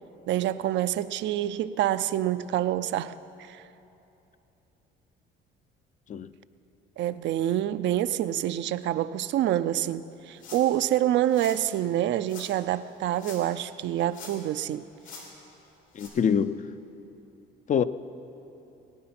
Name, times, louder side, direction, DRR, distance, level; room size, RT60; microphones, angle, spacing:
voice 1, 0.3-3.1 3.4-3.6 7.0-14.9, right 12 dB, 65° right, 0.5 m, -27 dB
sound 1, 10.4-10.8 11.3-11.6 12.3-12.5 13.1-13.6 13.9-14.6 15.0-15.3 15.9-16.1, left 4 dB, 80° left, 3.3 m, -45 dB
voice 2, 15.9-16.6 17.7-17.8, left 7 dB, 40° left, 0.5 m, -25 dB
19.5 x 9.5 x 5.9 m
cardioid pair, 105°, 20 cm